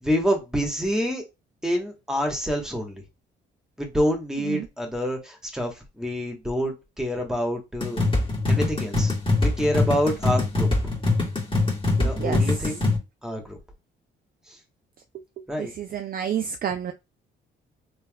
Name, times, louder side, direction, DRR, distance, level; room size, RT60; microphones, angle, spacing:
voice 1, 0.0-1.2 1.6-3.0 3.8-8.0 8.5-9.1 9.4-10.7 12.0-12.8 13.2-13.6 15.5-15.7, equal, 5° right, 1.2 m, -27 dB
sound 1, 7.8-13.0, left 2 dB, 25° left, 1.9 m, -23 dB
voice 2, 12.0-12.8 15.6-16.9, right 9 dB, 45° right, 0.4 m, -30 dB
3.3 x 2.8 x 2.3 m
cardioid pair, 90°, 20 cm